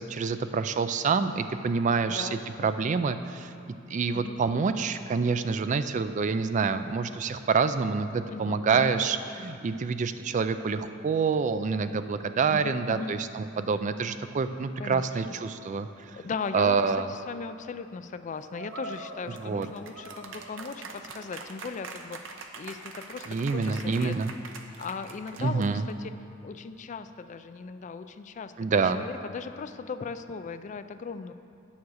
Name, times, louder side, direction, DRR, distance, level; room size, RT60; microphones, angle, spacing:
voice 1, 0.0-3.5 3.9-16.1 16.5-17.0 19.4-19.7 23.3-24.3 25.4-25.8 28.6-29.0, right 5 dB, 40° right, 10 dB, 0.3 m, -27 dB
voice 2, 2.1-2.8 4.1-4.8 8.3-9.0 12.5-13.1 14.8-15.1 16.1-24.2 24.8-26.1 26.4-31.3, left 5 dB, 40° left, 11 dB, 0.3 m, -38 dB
sound 1, 18.5-25.9, right 3 dB, 75° right, 0.8 m, -43 dB
9.2 x 7.2 x 6.3 m, 2.5 s
head